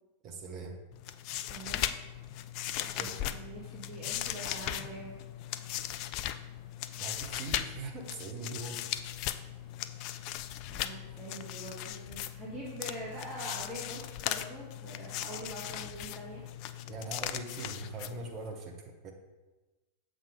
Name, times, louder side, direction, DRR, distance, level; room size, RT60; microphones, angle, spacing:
voice 1, 0.2-0.8 3.0-3.1 7.0-8.8 16.9-19.1, right 4 dB, 35° right, 2 dB, 1.0 m, -42 dB
sound 1, 0.9-18.5, left 12 dB, 45° left, 0.3 m, -38 dB
voice 2, 1.5-1.9 2.8-5.1 10.7-16.4, right 1 dB, 15° right, -6 dB, 1.4 m, -44 dB
7.2 x 3.9 x 5.1 m, 1.2 s
figure-of-eight pair, 90°, 0 cm